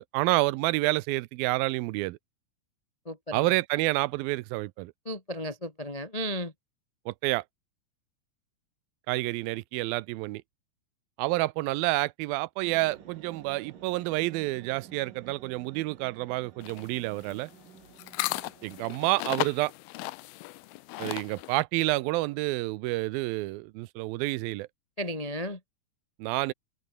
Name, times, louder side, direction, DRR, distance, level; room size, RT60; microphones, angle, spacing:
voice 1, 0.0-2.2 3.3-4.9 7.1-7.4 9.1-10.4 11.2-17.5 18.6-19.7 21.0-24.7 26.2-26.5, right 20 dB, 90° right, 2.5 m, -29 dB
voice 2, 3.0-3.5 5.0-6.5 25.0-25.6, equal, 40° left, 0.5 m, -34 dB
sound 1, 12.6-19.1, right 9 dB, 65° right, 4.0 m, -51 dB
sound 2, 16.6-21.6, left 20 dB, 85° left, 2.5 m, -36 dB
omnidirectional pair, 4.1 m